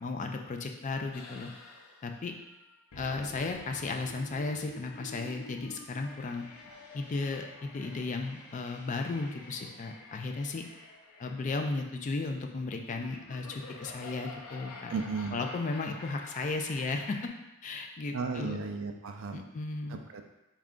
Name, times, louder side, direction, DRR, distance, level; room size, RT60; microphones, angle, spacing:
voice 1, 0.0-1.5 2.0-2.3 3.0-6.5 6.9-10.6 11.2-14.9 15.3-17.3 17.6-18.6 19.3-20.0, left 3 dB, 35° left, 4 dB, 0.3 m, -35 dB
sound 1, 1.1-17.3, left 2 dB, 90° left, 0.6 m, -49 dB
voice 2, 14.9-15.5 18.1-19.4 19.9-20.2, right 4 dB, 60° right, 5 dB, 0.4 m, -35 dB
4.2 x 2.4 x 3.6 m, 0.94 s
head